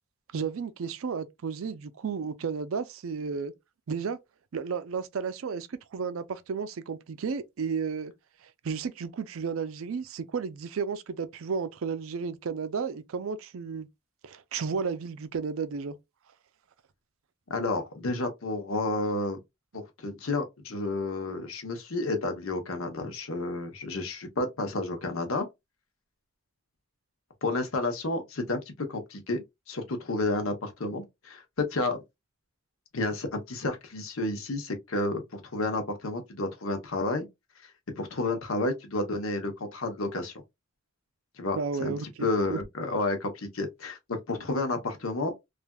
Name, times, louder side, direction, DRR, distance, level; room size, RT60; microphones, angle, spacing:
voice 1, 0.3-3.5 3.9-4.2 4.5-8.1 8.6-13.9 14.2-16.0 41.6-42.6, right 5 dB, 75° right, 0.4 m, -33 dB
voice 2, 17.5-19.4 19.7-25.5 27.4-32.0 32.9-37.3 37.6-37.7 38.0-40.3 41.4-41.9 42.2-45.3, left 2 dB, 80° left, 0.9 m, -31 dB
3.3 x 2.5 x 2.2 m
head